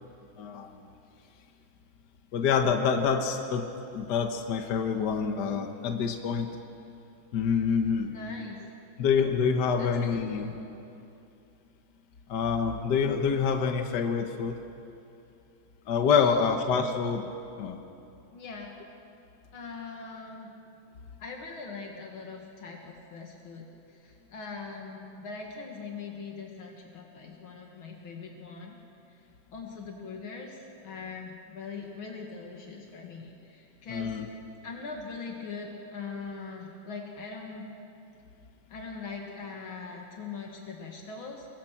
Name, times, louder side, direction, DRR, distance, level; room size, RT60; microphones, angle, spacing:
voice 1, 0.4-0.7 2.3-3.6 3.9-6.5 7.3-8.1 9.0-10.5 12.3-14.6 15.9-17.3 17.6-17.8 33.9-34.3, left 6 dB, 60° left, 5 dB, 1.7 m, -26 dB
voice 2, 8.1-8.6 9.8-10.6 16.2-16.5 18.3-18.7 19.5-20.5 21.2-28.8 29.5-34.2 34.6-37.7 38.7-41.5, left 4 dB, 80° left, 1 dB, 2.7 m, -41 dB
24.5 x 21.0 x 6.0 m, 2.7 s
omnidirectional pair, 2.2 m